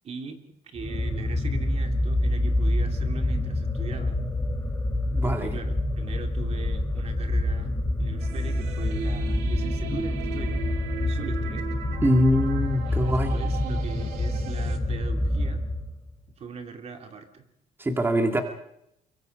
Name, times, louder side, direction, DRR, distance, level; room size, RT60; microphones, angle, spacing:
voice 1, 0.0-4.2 5.2-10.6 11.1-11.7 12.9-15.6 16.4-17.5, right 5 dB, 45° right, 5 dB, 2.6 m, -40 dB
sound 1, 0.8-16.1, left 1 dB, 15° left, 3.9 m, -27 dB
voice 2, 5.1-5.5 12.0-13.4 17.8-18.4, equal, 15° right, 4 dB, 2.2 m, -23 dB
sound 2, 8.2-14.8, right 9 dB, 85° right, 2.6 m, -39 dB
23.5 x 23.5 x 5.3 m, 0.79 s
cardioid pair, 115°, 15 cm